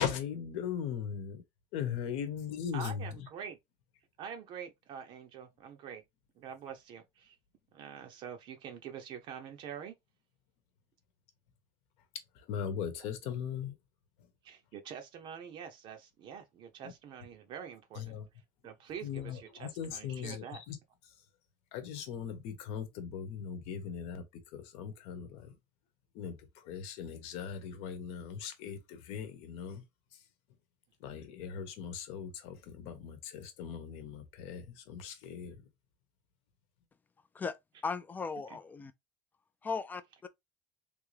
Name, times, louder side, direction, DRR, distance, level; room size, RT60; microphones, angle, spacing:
voice 1, 0.0-1.4 1.7-3.1 12.3-13.7 16.8-16.9 17.9-18.3 19.0-20.8 21.7-25.5 26.1-29.8 31.0-35.6, left 8 dB, 70° left, 1.0 m, -39 dB
voice 2, 2.7-3.6 4.2-6.0 6.4-7.4 7.7-9.9 14.4-18.2 18.6-20.6 38.5-38.6, right 8 dB, 50° right, 0.6 m, -45 dB
voice 3, 37.8-38.9 39.6-40.3, left 5 dB, 15° left, 0.4 m, -37 dB
3.4 x 2.6 x 3.2 m
cardioid pair, 145°, 11 cm